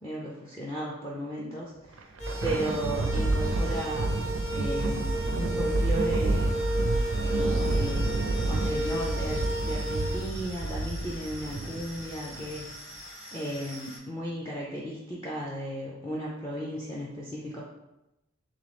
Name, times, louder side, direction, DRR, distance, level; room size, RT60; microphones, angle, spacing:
voice 1, 0.0-1.7 2.4-4.1 4.5-6.6 7.6-12.7 13.0-17.6, right 1 dB, 15° left, -6 dB, 0.4 m, -35 dB
Thunder, 1.8-12.6, right 2 dB, 70° right, 0.4 m, -29 dB
sound 1, 2.2-10.2, right 1 dB, 30° left, 0.9 m, -34 dB
sound 2, 3.1-14.0, left 1 dB, 75° left, 1.3 m, -46 dB
3.8 x 3.0 x 3.4 m, 0.94 s
head